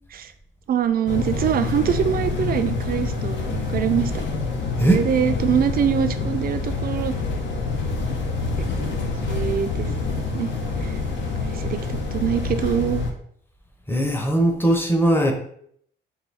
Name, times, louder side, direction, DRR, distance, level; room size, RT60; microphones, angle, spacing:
voice 1, 0.7-4.1 4.8-7.1 8.1-8.2 8.6-10.5 10.8-10.9 11.5-13.0, right 8 dB, 50° right, 9 dB, 0.4 m, -24 dB
sound 1, 1.1-13.1, left 4 dB, 65° left, 0.8 m, -26 dB
voice 2, 13.9-15.3, right 1 dB, 10° left, 3 dB, 0.7 m, -19 dB
4.3 x 2.3 x 3.4 m, 0.66 s
cardioid pair, 90°, 20 cm